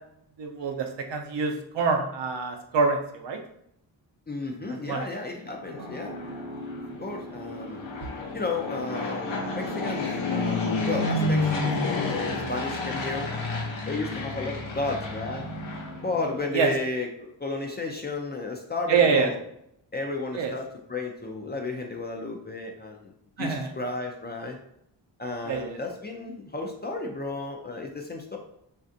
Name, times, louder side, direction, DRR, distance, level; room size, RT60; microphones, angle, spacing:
voice 1, 0.4-3.4 4.9-5.0 5.8-5.9 16.5-16.7 18.9-19.3 20.3-20.5 23.4-23.7 25.5-25.8, right 5 dB, 70° right, 3 dB, 0.6 m, -26 dB
voice 2, 4.3-6.2 7.0-7.8 8.3-13.3 13.9-15.5 16.0-19.4 19.9-23.1 23.4-24.6 25.2-28.4, left 3 dB, 25° left, 1 dB, 0.3 m, -33 dB
Fixed-wing aircraft airplane, 5.4-16.5, left 2 dB, 80° left, 0.9 m, -30 dB
3.2 x 2.6 x 2.5 m, 0.75 s
cardioid pair, 90°, 45 cm